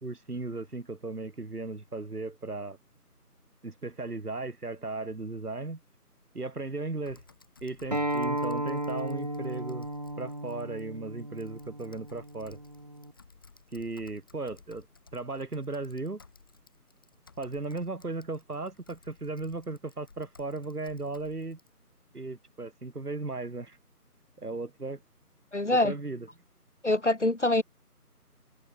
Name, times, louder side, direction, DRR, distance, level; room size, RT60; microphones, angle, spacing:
voice 1, 0.0-2.8 3.6-5.8 6.3-7.2 7.6-9.9 10.2-12.6 13.7-14.9 15.1-16.2 17.4-21.6 22.1-23.8 24.4-25.0 25.7-26.3, right 3 dB, 70° right, 2.4 m, -36 dB
Typing, 7.1-21.7, left 4 dB, 15° left, 4.6 m, -59 dB
Acoustic guitar, 7.9-13.1, right 1 dB, 25° right, 1.9 m, -34 dB
voice 2, 25.5-25.9 26.8-27.6, left 2 dB, 50° left, 0.5 m, -24 dB
figure-of-eight pair, 175°, 47 cm